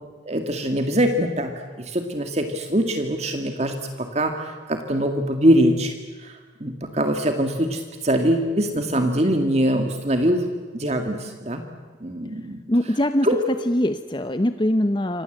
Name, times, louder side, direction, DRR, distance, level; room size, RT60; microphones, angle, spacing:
voice 1, 0.2-10.4 10.7-11.6 12.0-12.6 13.2-13.4, equal, 35° right, 5 dB, 2.0 m, -23 dB
voice 2, 12.7-13.3 13.7-15.2, left 1 dB, 25° left, 10 dB, 0.8 m, -22 dB
27.5 x 26.0 x 8.0 m, 1.4 s
head